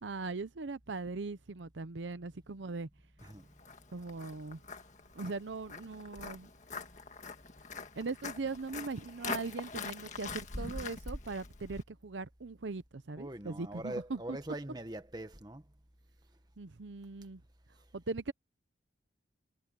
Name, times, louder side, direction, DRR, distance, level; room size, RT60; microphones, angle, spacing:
voice 1, 0.0-2.9 3.9-4.6 5.1-6.5 8.0-14.4 16.6-17.4 17.9-18.3, right 3 dB, 80° right, 0.7 m, -40 dB
Walk footsteps, 3.2-11.8, left 4 dB, 40° left, 1.7 m, -44 dB
voice 2, 13.2-15.6, right 1 dB, 20° right, 1.5 m, -42 dB
head